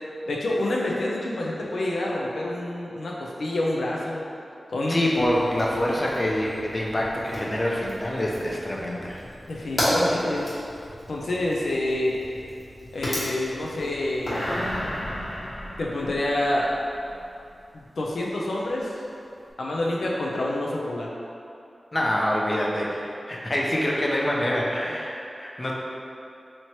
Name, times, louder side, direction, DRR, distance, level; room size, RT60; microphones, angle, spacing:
voice 1, 0.3-4.2 4.7-5.3 9.5-10.5 11.1-12.2 12.9-14.6 15.8-16.7 17.7-18.9 19.6-21.1, left 1 dB, 90° left, -3 dB, 0.4 m, -27 dB
voice 2, 4.9-9.2 21.9-25.7, left 1 dB, 30° left, -3 dB, 0.5 m, -26 dB
Fire, 5.1-14.5, equal, 45° left, 1.2 m, -33 dB
sound 1, 14.3-17.2 17.6-17.7, equal, 65° left, 1.2 m, -33 dB
3.1 x 2.8 x 4.3 m, 2.6 s
wide cardioid pair, 100°, 0 cm